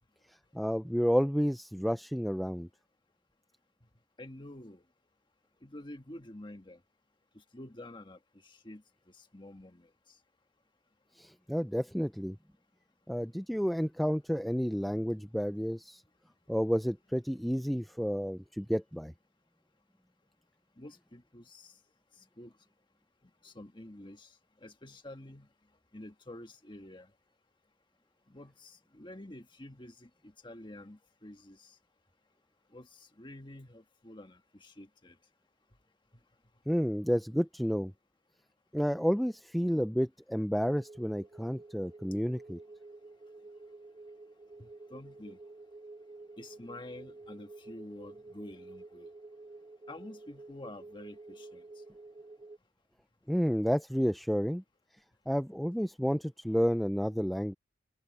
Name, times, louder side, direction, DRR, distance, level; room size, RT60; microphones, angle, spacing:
voice 1, 0.3-2.7 11.2-12.4 13.1-16.0 16.5-19.1 36.7-37.9 38.7-42.6 53.3-54.6 55.3-57.5, equal, ahead, 0.4 m, -30 dB
voice 2, 4.2-4.8 5.6-6.8 7.3-8.8 9.2-9.9 20.8-21.7 22.4-22.5 23.4-24.3 24.6-25.5 25.9-27.1 28.3-31.7 32.7-35.2 44.6-45.4 46.4-49.1 49.9-51.6, left 1 dB, 25° left, 1.6 m, -48 dB
sound 1, 40.6-52.6, right 2 dB, 25° right, 1.1 m, -51 dB
open air
head